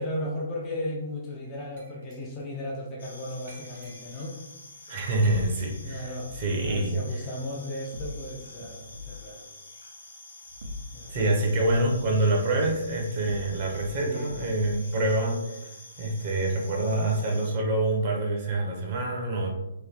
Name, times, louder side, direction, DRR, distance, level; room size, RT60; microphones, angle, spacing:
voice 1, 0.0-4.3 5.8-6.3 6.6-9.5 10.9-11.1 14.0-14.3, left 1 dB, 15° left, -2 dB, 0.4 m, -35 dB
Glass, 1.8-2.6 3.5-4.4 5.2-6.1, right 2 dB, 55° right, 1.2 m, -55 dB
sound 1, 3.0-17.6, left 2 dB, 80° left, 0.9 m, -48 dB
voice 2, 4.9-7.2 11.1-15.7 16.0-19.5, right 2 dB, 30° right, 0 dB, 0.7 m, -26 dB
sound 2, 5.3-6.8 7.9-9.3 10.4-11.3 11.6-13.9 14.3-14.9, left 2 dB, 80° right, 0.4 m, -42 dB
2.9 x 2.2 x 3.4 m, 0.92 s
hypercardioid pair, 170°, 0 cm